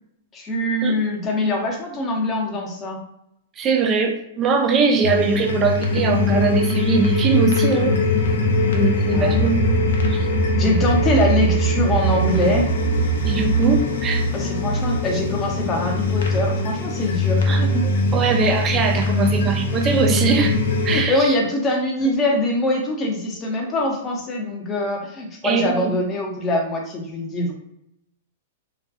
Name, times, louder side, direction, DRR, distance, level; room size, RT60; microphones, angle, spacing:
voice 1, 0.3-3.0 9.1-9.5 10.6-12.7 14.3-17.9 20.9-27.5, left 1 dB, 25° left, 0 dB, 0.7 m, -23 dB
voice 2, 3.6-8.0 8.7-9.7 10.1-10.2 13.2-14.3 17.5-17.6 18.1-20.6 20.8-21.3 22.0-22.1 25.4-25.9, right 5 dB, 25° right, 3 dB, 0.5 m, -21 dB
sound 1, 5.0-21.0, left 1 dB, 75° left, 0.5 m, -21 dB
2.5 x 2.2 x 2.5 m, 0.78 s
hypercardioid pair, 120°, 0 cm